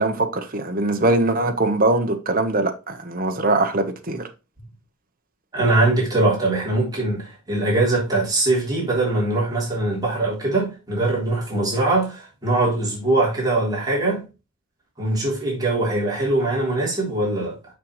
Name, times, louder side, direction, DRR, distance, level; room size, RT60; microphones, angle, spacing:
voice 1, 0.0-4.3, right 2 dB, 40° right, 1.2 m, -22 dB
voice 2, 5.5-14.2 15.0-17.6, right 2 dB, 15° right, 3.7 m, -22 dB
6.7 x 6.6 x 3.2 m
head